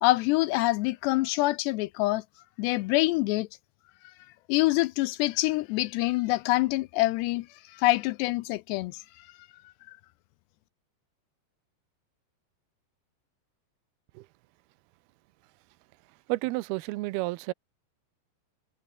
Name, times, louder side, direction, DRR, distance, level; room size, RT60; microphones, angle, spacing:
voice 1, 0.0-2.2 2.6-3.5 4.5-9.3 9.9-10.0, left 19 dB, 80° left, 2.5 m, -26 dB
voice 2, 16.3-17.5, right 20 dB, 80° right, 2.4 m, -31 dB
omnidirectional pair, 5.2 m